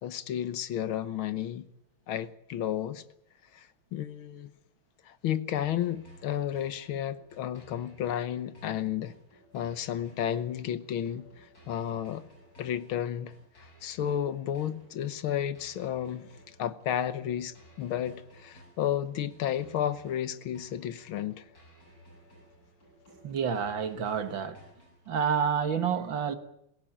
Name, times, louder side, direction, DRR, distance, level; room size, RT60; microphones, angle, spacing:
voice 1, 0.0-1.7 2.1-3.0 3.5-4.5 5.0-9.1 9.5-12.3 12.6-13.3 13.6-21.4, left 10 dB, 75° left, 1.8 m, -32 dB
sound 1, 5.5-25.5, equal, 40° left, 8.0 m, -57 dB
voice 2, 23.2-24.6 25.1-26.3, right 7 dB, 65° right, 2.2 m, -29 dB
21.5 x 17.5 x 8.8 m
omnidirectional pair, 2.3 m